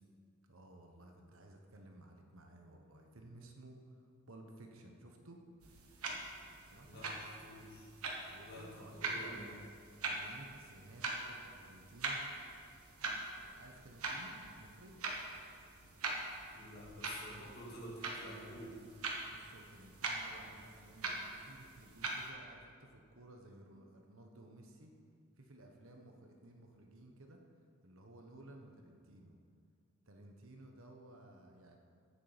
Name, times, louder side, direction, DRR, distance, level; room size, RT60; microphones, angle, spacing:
voice 1, 0.5-5.4 6.6-7.2 8.3-12.2 13.5-15.0 19.3-24.9 25.4-27.4 27.8-29.4 30.1-31.8, right 1 dB, 65° right, 2 dB, 1.3 m, -56 dB
sound 1, 5.6-22.3, right 3 dB, 85° right, 1.5 m, -43 dB
voice 2, 6.8-7.9 8.3-9.6 16.5-19.0, equal, 45° left, -4 dB, 2.5 m, -50 dB
15.0 x 6.8 x 5.2 m, 2.2 s
head